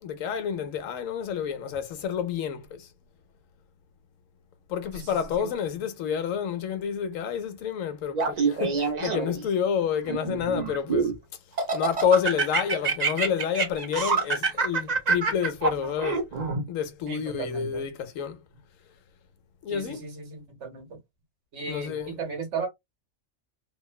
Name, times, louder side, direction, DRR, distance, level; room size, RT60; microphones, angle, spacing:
voice 1, 0.0-2.9 4.7-11.2 11.7-16.3 16.7-18.4 19.6-20.0 21.7-22.2, left 8 dB, 80° left, 1.0 m, -29 dB
voice 2, 4.9-5.5 17.1-17.9 19.7-21.0 21.5-22.7, right 5 dB, 65° right, 1.3 m, -36 dB
Laughter, 8.1-9.4 10.1-11.1 11.6-16.6, right 4 dB, 45° right, 0.6 m, -26 dB
2.9 x 2.1 x 2.2 m
omnidirectional pair, 1.4 m